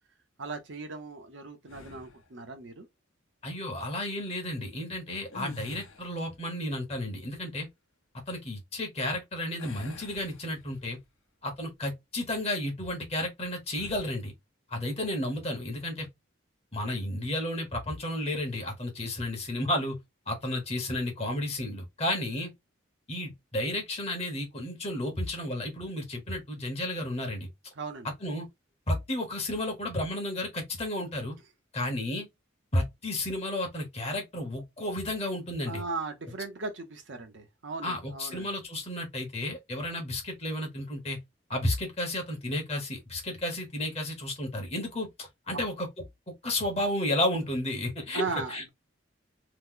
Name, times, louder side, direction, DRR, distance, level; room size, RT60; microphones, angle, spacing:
voice 1, 0.4-2.9 27.8-28.1 35.7-38.5 45.5-45.6 48.1-48.7, right 4 dB, 65° right, 0.8 m, -37 dB
sound 1, 1.7-2.3 5.2-6.3 9.6-11.0 11.5-11.7 13.7-14.2, left 2 dB, 80° left, 0.8 m, -47 dB
voice 2, 3.4-7.7 8.3-11.0 11.4-14.3 14.7-16.1 16.7-20.0 20.3-22.5 23.1-27.5 28.2-28.5 28.9-31.4 31.7-32.3 32.7-35.8 37.8-41.2 41.5-45.9 46.4-48.2 48.5-48.6, left 1 dB, 30° left, 1.0 m, -32 dB
2.9 x 2.1 x 3.7 m
head